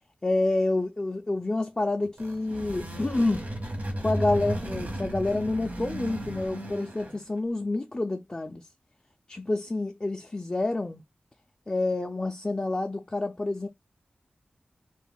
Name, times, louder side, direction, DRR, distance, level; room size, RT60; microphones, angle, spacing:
voice 1, 0.2-3.5 4.0-8.7 9.3-11.0 11.7-13.7, left 2 dB, 25° left, 0.3 m, -28 dB
sound 1, 2.0-7.3, right 1 dB, 55° right, 0.9 m, -34 dB
2.3 x 2.0 x 3.4 m
wide cardioid pair, 95°, 3 cm